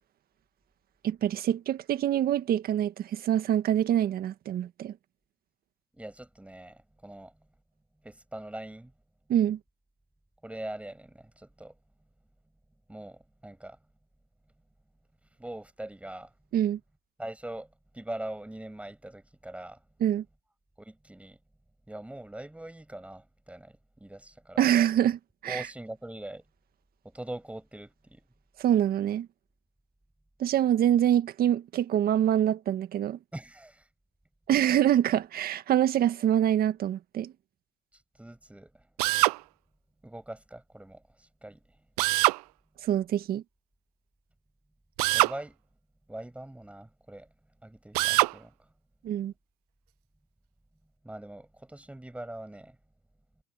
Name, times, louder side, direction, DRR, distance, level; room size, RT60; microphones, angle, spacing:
voice 1, 1.0-4.9 9.3-9.6 16.5-16.8 20.0-20.2 24.6-25.7 28.6-29.3 30.4-33.2 34.5-37.3 42.8-43.4 49.0-49.3, right 11 dB, 50° right, 1.8 m, -25 dB
voice 2, 5.9-7.4 8.0-8.9 10.4-11.7 12.9-13.8 15.4-16.3 17.2-19.8 20.8-21.4 21.9-24.7 25.5-26.4 27.0-28.2 33.3-33.9 38.2-38.9 40.0-41.6 45.1-45.6 46.1-47.3 47.6-48.7 51.0-52.8, right 1 dB, 5° right, 6.8 m, -42 dB
Drill, 39.0-39.4 42.0-42.4 45.0-45.4 47.9-48.3, right 24 dB, 90° right, 0.4 m, -23 dB
supercardioid pair, 85°, 19 cm